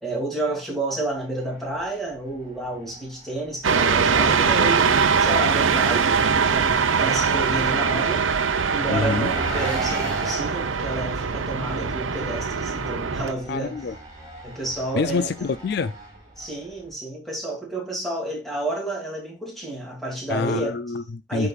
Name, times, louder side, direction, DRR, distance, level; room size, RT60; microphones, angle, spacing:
voice 1, 0.0-8.2 8.7-13.8 14.4-15.3 16.4-20.8 21.3-21.5, right 2 dB, ahead, 2.8 m, -30 dB
Engine, 1.1-16.9, right 1 dB, 20° right, 4.8 m, -40 dB
sound 1, 3.6-13.3, right 5 dB, 85° right, 0.7 m, -22 dB
voice 2, 8.9-9.3 13.5-13.9 14.9-15.9 20.3-21.5, left 4 dB, 55° left, 0.4 m, -26 dB
13.0 x 4.8 x 2.4 m
head